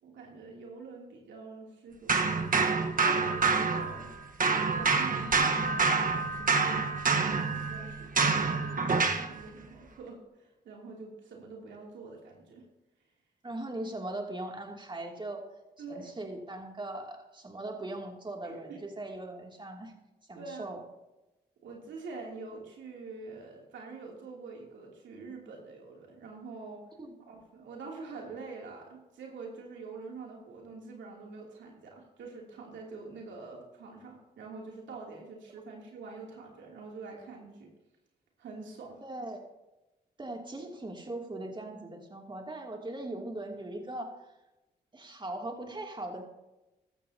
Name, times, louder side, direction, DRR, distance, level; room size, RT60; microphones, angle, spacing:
voice 1, 0.0-2.4 3.1-4.1 4.7-12.6 15.8-16.1 18.4-18.8 20.3-20.8 21.6-26.8 27.3-37.7 38.4-39.0, right 4 dB, 85° right, -1 dB, 3.0 m, -45 dB
sound 1, 2.1-4.1 4.4-9.3, right 4 dB, 45° right, 1.3 m, -27 dB
voice 2, 13.4-15.4 15.9-20.0 20.3-20.8 27.0-27.2 39.0-39.4 40.2-44.2 44.9-46.3, right 2 dB, 25° right, 1 dB, 2.7 m, -39 dB
15.0 x 12.5 x 2.9 m, 1.0 s
supercardioid pair, 55°, 19 cm